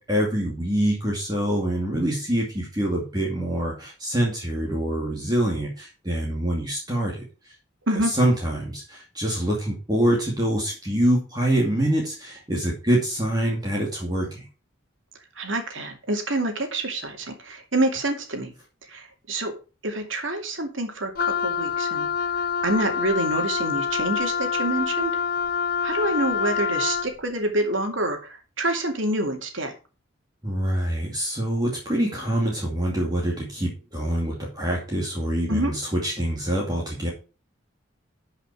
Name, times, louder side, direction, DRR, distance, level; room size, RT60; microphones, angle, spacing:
voice 1, 0.0-7.2 8.1-14.4 30.4-37.1, right 1 dB, 20° right, -2 dB, 2.5 m, -25 dB
voice 2, 15.4-18.5 18.9-19.5 19.8-25.1 25.8-29.7 35.5-35.7, right 1 dB, 70° right, 4 dB, 2.6 m, -27 dB
Wind instrument woodwind instrument, 21.1-27.1, left 6 dB, 45° left, 0.5 m, -26 dB
12.5 x 5.7 x 4.9 m, 0.33 s
head